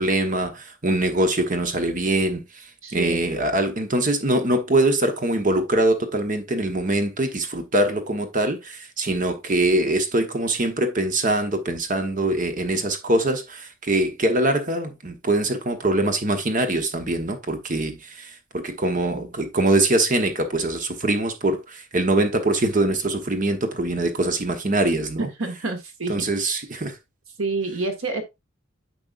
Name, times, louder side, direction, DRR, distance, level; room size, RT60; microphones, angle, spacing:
voice 1, 0.0-2.4 2.9-25.3 26.1-26.9, right 1 dB, 40° right, 1.1 m, -23 dB
voice 2, 2.8-3.2 25.2-26.2 27.4-28.2, right 3 dB, 85° right, 1.7 m, -28 dB
9.0 x 5.4 x 2.5 m
head